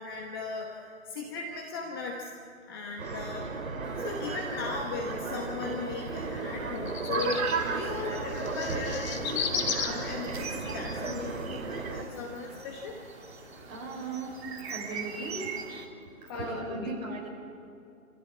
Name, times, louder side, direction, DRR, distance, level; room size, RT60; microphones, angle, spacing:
voice 1, 0.0-2.3 2.7-3.6 4.0-13.0 16.3-17.0, left 4 dB, 15° left, 0 dB, 1.1 m, -37 dB
sound 1, 3.0-12.0, right 4 dB, 70° right, 2.8 m, -34 dB
sound 2, 3.8-15.6, left 6 dB, 50° left, 3.2 m, -40 dB
sound 3, 7.2-15.9, right 5 dB, 45° right, 2.9 m, -43 dB
voice 2, 13.7-15.5 16.0-17.3, right 3 dB, 30° right, -1 dB, 5.0 m, -37 dB
27.5 x 16.0 x 8.6 m, 2.5 s
hypercardioid pair, 155°, 43 cm